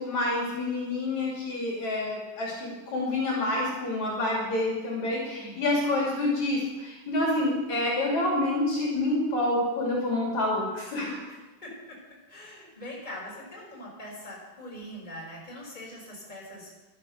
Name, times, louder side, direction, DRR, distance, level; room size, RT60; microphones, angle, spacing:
voice 1, 0.0-11.2, left 2 dB, 55° left, -3 dB, 4.1 m, -28 dB
voice 2, 5.4-5.8 11.3-12.0 12.3-16.7, left 1 dB, 10° left, -3 dB, 4.6 m, -42 dB
13.0 x 12.0 x 6.5 m, 1.2 s
omnidirectional pair, 4.0 m